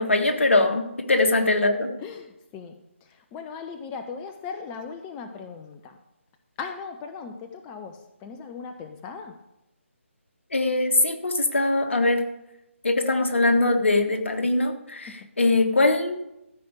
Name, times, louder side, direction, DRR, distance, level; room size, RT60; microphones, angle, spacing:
voice 1, 0.0-1.9 10.5-12.2 12.8-16.2, left 2 dB, 65° left, 5 dB, 1.6 m, -22 dB
voice 2, 2.0-2.7 3.0-6.0 6.6-9.4 15.1-15.3, left 5 dB, 15° left, 6 dB, 0.5 m, -38 dB
14.0 x 5.1 x 8.1 m, 0.87 s
figure-of-eight pair, 145°, 7 cm